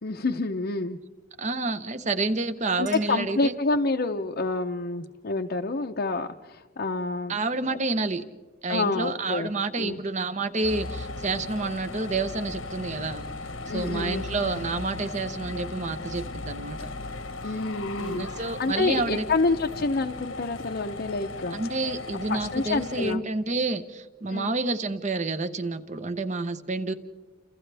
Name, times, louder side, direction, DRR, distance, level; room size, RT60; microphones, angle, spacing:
voice 1, 0.0-1.0 2.8-7.4 7.7-7.8 8.7-10.0 13.7-14.2 17.4-21.6 22.3-23.2 24.3-24.5, left 3 dB, 50° left, 2 dB, 0.7 m, -28 dB
voice 2, 1.4-3.5 7.3-8.2 8.6-13.3 13.7-16.9 18.0-19.2 21.5-26.9, right 3 dB, 35° right, 11 dB, 0.9 m, -29 dB
Chink clink, 2.8-4.1, right 6 dB, 65° right, 7.0 m, -51 dB
sound 1, 10.6-23.2, left 2 dB, 90° left, 1.2 m, -37 dB
30.0 x 28.0 x 3.4 m, 1.4 s
head